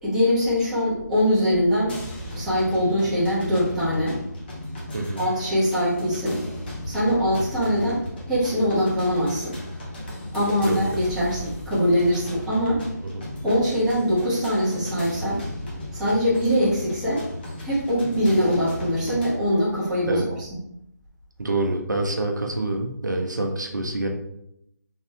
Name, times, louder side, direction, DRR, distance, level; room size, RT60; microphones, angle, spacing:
voice 1, 0.0-2.0 2.3-4.1 5.2-6.4 6.8-8.0 8.3-9.6 10.3-12.8 13.4-15.4 15.9-17.2 17.6-20.6, equal, 5° right, -10 dB, 1.0 m, -22 dB
sound 1, 1.9-19.3, left 1 dB, 35° left, 1.0 m, -36 dB
voice 2, 4.9-5.3 10.6-10.8 13.0-13.3 20.1-20.3 21.4-24.1, right 2 dB, 75° right, 2 dB, 0.6 m, -26 dB
3.6 x 2.5 x 3.2 m, 0.78 s
figure-of-eight pair, 150°, 10 cm